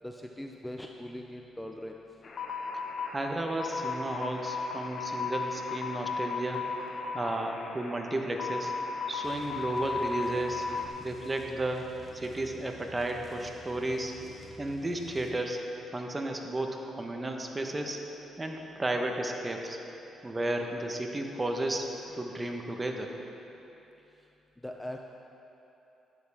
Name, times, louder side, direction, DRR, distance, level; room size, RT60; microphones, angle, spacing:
voice 1, 0.0-2.0 22.1-22.4 24.6-25.0, left 1 dB, 10° left, 2 dB, 0.6 m, -41 dB
sound 1, 2.2-10.9, left 5 dB, 45° left, 0.8 m, -35 dB
voice 2, 3.1-6.7 7.1-8.7 9.1-10.7 11.0-14.1 14.6-15.6 15.9-18.0 18.4-19.8 20.2-23.2, right 1 dB, 20° right, 3 dB, 1.0 m, -33 dB
sound 2, 9.2-15.4, left 2 dB, 25° left, 1.5 m, -51 dB
12.0 x 10.5 x 3.5 m, 3.0 s
cardioid pair, 90°, 0 cm